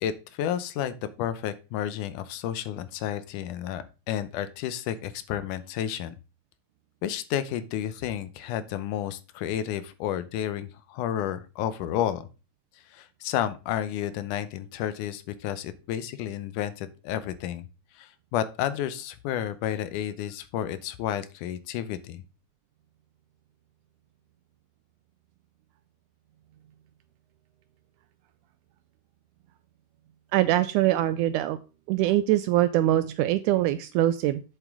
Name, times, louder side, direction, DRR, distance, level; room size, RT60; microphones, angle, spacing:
voice 1, 0.0-6.2 7.0-12.3 12.9-17.7 18.0-22.2, left 10 dB, 80° left, 13 dB, 2.1 m, -31 dB
voice 2, 30.3-31.6 31.9-34.4, right 14 dB, 80° right, 12 dB, 1.8 m, -23 dB
8.2 x 7.3 x 3.6 m, 0.31 s
omnidirectional pair, 3.9 m